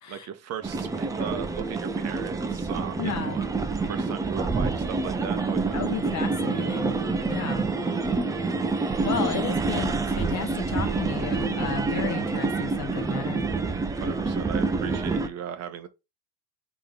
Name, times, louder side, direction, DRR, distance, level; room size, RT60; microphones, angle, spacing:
voice 1, 0.1-3.4 3.9-5.8 14.0-15.9, right 9 dB, 35° right, 0.7 m, -37 dB
sound 1, 0.6-15.3, right 4 dB, 10° right, 0.3 m, -27 dB
voice 2, 3.0-3.4 5.7-7.0 7.3-7.7 9.0-13.5, left 7 dB, 40° left, 0.9 m, -33 dB
3.7 x 3.0 x 3.7 m
hypercardioid pair, 85°, 43 cm